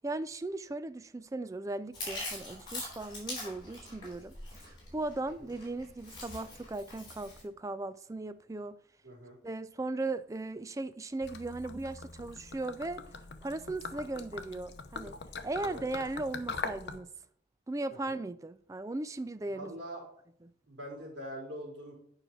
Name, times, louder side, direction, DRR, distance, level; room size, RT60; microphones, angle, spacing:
voice 1, 0.0-8.8 9.4-13.0 13.4-15.2 15.4-17.1 17.7-19.8 20.4-20.5, right 2 dB, 15° right, 0.3 m, -37 dB
Chewing mastication, 1.9-7.4, left 2 dB, 25° left, 3.8 m, -43 dB
voice 2, 9.0-9.4 15.6-15.9 18.1-18.2 19.5-20.0 20.7-21.9, equal, 85° right, 4.0 m, -43 dB
Gurgling / Liquid, 11.2-17.0, left 4 dB, 70° left, 0.7 m, -42 dB
9.4 x 5.6 x 4.6 m
head